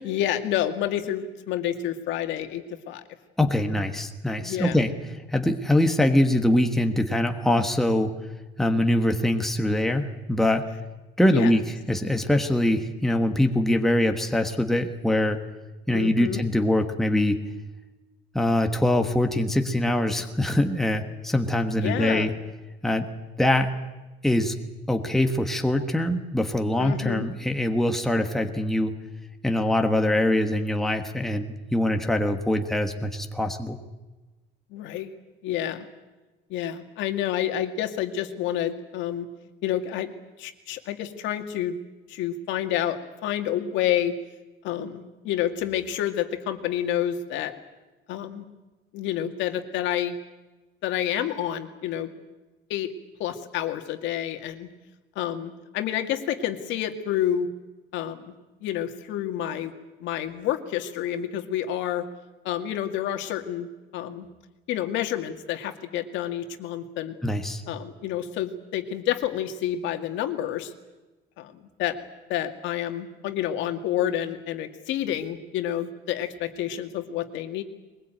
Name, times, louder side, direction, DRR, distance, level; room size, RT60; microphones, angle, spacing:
voice 1, 0.0-3.0 4.4-4.8 11.3-11.5 15.9-16.4 21.8-22.3 26.8-27.3 34.7-35.1 35.4-35.8 36.5-39.3 39.6-40.1 40.4-41.8 42.1-44.2 44.6-47.5 48.1-48.5 48.9-50.2 50.8-52.1 52.7-52.9 53.2-54.7 55.2-57.5 57.9-58.3 58.6-59.7 60.0-62.1 62.4-64.3 64.7-67.2 67.7-70.7 71.4-72.0 72.3-77.6, left 11 dB, 65° left, 7 dB, 2.3 m, -29 dB
voice 2, 3.4-4.9 5.3-8.1 8.6-10.7 11.2-11.6 11.9-15.4 15.9-17.4 18.3-22.3 22.8-23.1 23.4-23.7 24.2-24.5 24.9-28.9 29.4-33.8 67.2-67.6, left 1 dB, ahead, 5 dB, 1.3 m, -23 dB
22.5 x 21.0 x 9.1 m, 1.1 s
cardioid pair, 175°, 21 cm